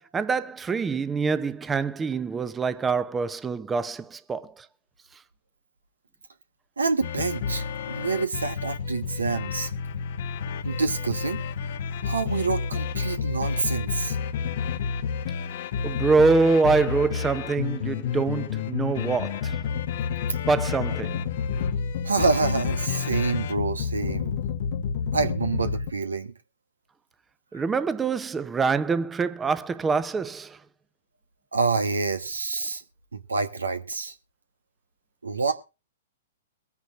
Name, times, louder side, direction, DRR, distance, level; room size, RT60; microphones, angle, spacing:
voice 1, 0.1-4.7 15.8-19.6 20.5-21.3 27.5-30.6, right 4 dB, 15° right, 0.8 m, -25 dB
voice 2, 6.8-9.7 10.6-11.4 12.0-14.2 20.3-20.4 22.0-24.4 25.1-26.3 27.5-27.6 31.5-32.8 33.1-34.1 35.2-35.5, right 4 dB, 85° right, 1.3 m, -27 dB
sound 1, 7.0-25.9, left 7 dB, 55° left, 1.0 m, -30 dB
23.0 x 9.6 x 2.5 m
hypercardioid pair, 120°, 0 cm